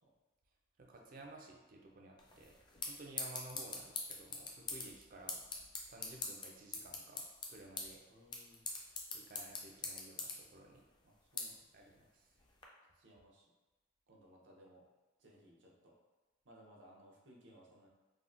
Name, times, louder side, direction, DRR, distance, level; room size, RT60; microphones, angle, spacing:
voice 1, 0.8-2.5 2.8-5.4 5.8-8.0 9.1-10.8 11.7-12.4, right 2 dB, 50° right, 1 dB, 0.4 m, -55 dB
sound 1, 2.2-12.7, left 3 dB, 25° left, 0.3 m, -45 dB
voice 2, 8.1-8.6 11.0-11.6 11.9-12.0 12.8-13.4 14.1-14.8 15.2-16.0 16.4-17.9, equal, 85° right, -2 dB, 0.7 m, -62 dB
3.4 x 2.1 x 2.5 m, 1.2 s
head